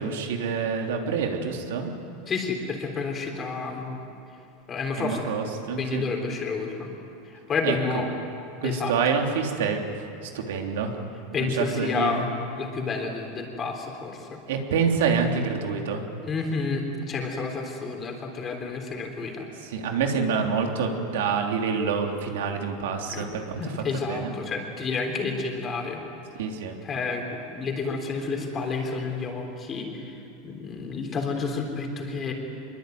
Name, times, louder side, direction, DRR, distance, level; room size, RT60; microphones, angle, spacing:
voice 1, 0.0-1.9 5.0-6.0 7.6-7.8 8.6-9.8 10.2-10.9 11.4-12.3 14.5-16.0 19.6-24.3 26.4-26.7, right 5 dB, 85° right, 2 dB, 3.2 m, -27 dB
voice 2, 2.3-4.0 4.7-5.2 5.8-6.9 7.3-8.1 8.6-8.9 11.3-12.2 12.6-14.4 16.2-19.5 23.1-23.3 23.6-26.0 26.8-30.2 30.4-32.3, left 4 dB, 20° left, 2 dB, 3.5 m, -30 dB
25.0 x 22.5 x 9.3 m, 2.8 s
supercardioid pair, 165°, 0 cm